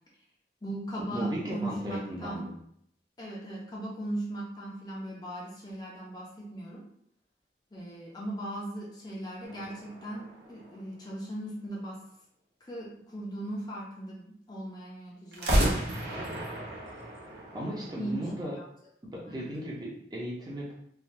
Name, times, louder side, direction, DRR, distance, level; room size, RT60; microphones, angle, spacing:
voice 1, 0.6-2.4 3.2-6.8 7.7-12.0 12.6-16.5 18.0-18.7 19.2-19.5, right 1 dB, 25° left, -4 dB, 0.5 m, -38 dB
voice 2, 1.1-2.5 17.5-18.6 19.0-20.8, equal, 25° right, -4 dB, 0.6 m, -36 dB
sound 1, 9.4-11.2 15.3-18.4, right 1 dB, 65° right, 0.7 m, -32 dB
3.3 x 2.2 x 2.6 m, 0.69 s
head